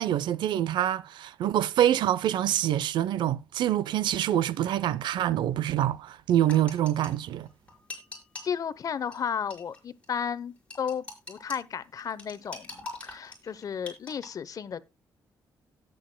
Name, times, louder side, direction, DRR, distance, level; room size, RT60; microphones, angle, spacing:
voice 1, 0.0-7.5, right 11 dB, 80° right, 0.6 m, -26 dB
sound 1, 6.4-8.5 9.1-9.2 9.5-9.8 10.0-10.1 10.7-11.6 12.0-14.3, left 3 dB, 15° left, 5.0 m, -43 dB
voice 2, 8.4-14.8, left 7 dB, 50° left, 0.8 m, -33 dB
17.0 x 7.8 x 2.2 m
cardioid pair, 105°, 8 cm